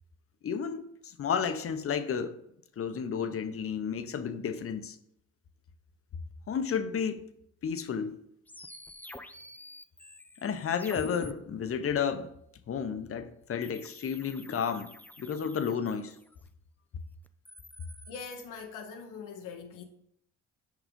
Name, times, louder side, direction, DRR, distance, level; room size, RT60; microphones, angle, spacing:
voice 1, 0.4-2.4 2.8-5.0 6.5-7.2 7.6-8.2 10.4-12.3 12.7-14.9 15.2-16.2, left 7 dB, 50° left, 0.8 m, -32 dB
sound 1, 8.5-11.3 13.6-16.4 17.3-18.5, left 1 dB, 5° left, 0.4 m, -48 dB
voice 2, 18.1-19.8, left 5 dB, 85° left, 1.0 m, -42 dB
6.3 x 4.9 x 5.2 m
cardioid pair, 90°, 30 cm